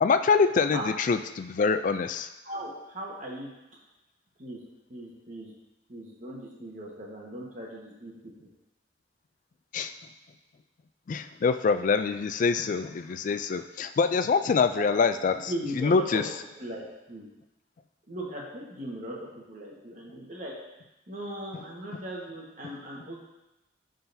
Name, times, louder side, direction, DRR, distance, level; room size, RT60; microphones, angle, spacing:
voice 1, 0.0-2.3 9.7-9.9 11.1-16.2, left 5 dB, 45° left, 10 dB, 0.3 m, -25 dB
voice 2, 2.4-3.5 4.4-4.6 4.9-5.5 5.9-8.1 8.4-8.5 14.7-14.9 15.5-16.2 16.6-17.3 18.1-20.6 21.1-23.2, right 1 dB, 45° right, -3 dB, 1.4 m, -38 dB
11.5 x 3.9 x 2.7 m, 0.96 s
head